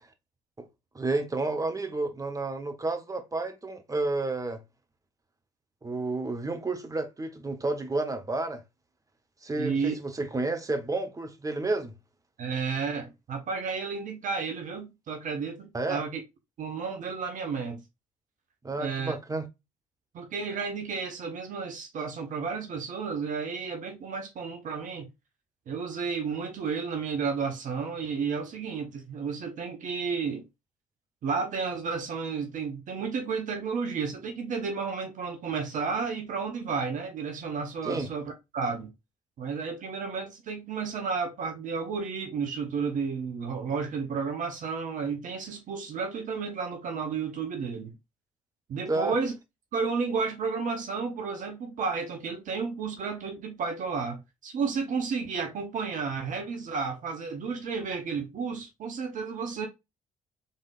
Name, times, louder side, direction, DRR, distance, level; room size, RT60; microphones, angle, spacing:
voice 1, 0.9-4.6 5.8-8.6 9.4-11.9 15.7-16.0 18.6-19.4 37.8-38.1 48.9-49.1, right 2 dB, 20° right, 1.2 m, -31 dB
voice 2, 9.6-9.9 12.4-16.2 16.6-17.8 18.7-19.1 20.1-25.1 25.7-30.4 31.2-38.9 39.4-47.9 48.7-49.3 49.7-59.7, right 5 dB, 45° right, 1.0 m, -32 dB
5.4 x 3.7 x 2.5 m
figure-of-eight pair, 45°, 18 cm